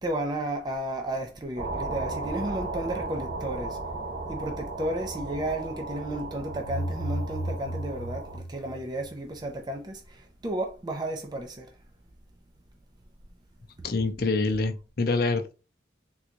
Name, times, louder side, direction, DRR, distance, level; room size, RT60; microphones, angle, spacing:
voice 1, 0.0-3.8 4.3-11.7, right 1 dB, 25° right, 0.5 m, -33 dB
sound 1, 1.6-8.4, right 2 dB, 40° right, 1.3 m, -35 dB
sound 2, 6.5-9.4, right 1 dB, 85° left, 0.9 m, -34 dB
voice 2, 13.8-15.5, left 3 dB, 55° left, 0.6 m, -26 dB
3.8 x 2.3 x 2.9 m
head